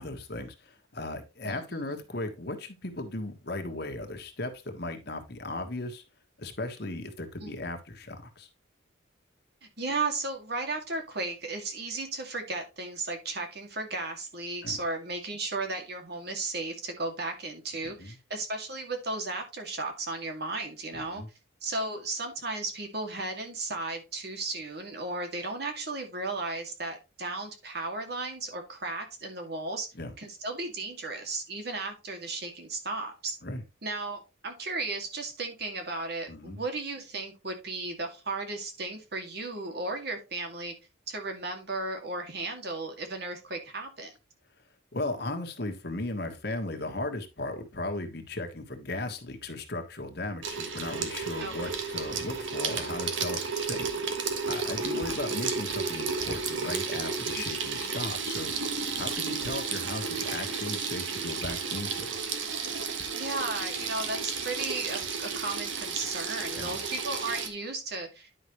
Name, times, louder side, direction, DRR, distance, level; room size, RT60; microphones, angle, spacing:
voice 1, 0.0-6.0 6.4-8.5 14.6-14.8 17.8-18.1 20.9-21.3 29.9-30.1 33.4-33.6 36.3-36.6 44.9-54.0 54.5-58.5 58.9-62.2 66.5-66.8, left 2 dB, 55° left, 1.4 m, -36 dB
voice 2, 9.8-21.2 21.6-29.9 30.2-33.4 33.8-40.7 41.1-44.1 51.4-51.7 57.4-57.5 57.8-57.9 63.1-68.3, right 3 dB, 55° right, 2.2 m, -35 dB
Water tap faucet / Sink (filling or washing), 50.4-67.5, right 5 dB, 70° right, 1.4 m, -32 dB
10.0 x 5.9 x 3.1 m
head